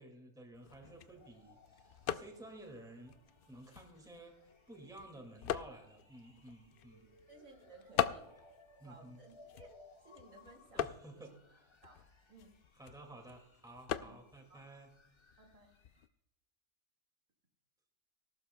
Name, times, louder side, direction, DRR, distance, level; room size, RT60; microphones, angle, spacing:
voice 1, 0.0-3.2 3.5-4.4 4.7-7.1 8.8-9.2 10.7-11.7 12.8-14.9, right 1 dB, 5° right, 3 dB, 1.9 m, -53 dB
sound 1, 0.5-16.1, left 9 dB, 90° left, 0.4 m, -44 dB
sound 2, 1.0-16.1, left 3 dB, 20° left, 1.0 m, -65 dB
voice 2, 7.3-8.3 8.8-11.2 11.8-12.0 12.3-12.5 13.1-13.3 14.0-14.2 14.5-14.6 15.4-15.7, right 2 dB, 65° right, 2 dB, 2.5 m, -59 dB
19.0 x 12.0 x 2.2 m, 0.86 s
omnidirectional pair, 1.5 m